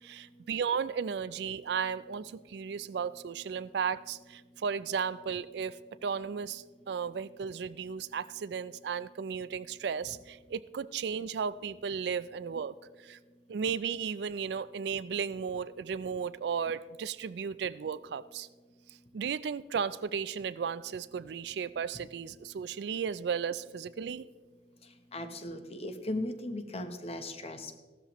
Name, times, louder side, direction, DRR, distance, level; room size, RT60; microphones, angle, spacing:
voice 1, 0.0-13.2 13.5-18.5 18.9-24.3, right 6 dB, 60° right, 16 dB, 0.3 m, -35 dB
voice 2, 25.1-27.8, left 1 dB, 35° left, 8 dB, 0.9 m, -37 dB
15.0 x 13.0 x 3.0 m, 1.4 s
head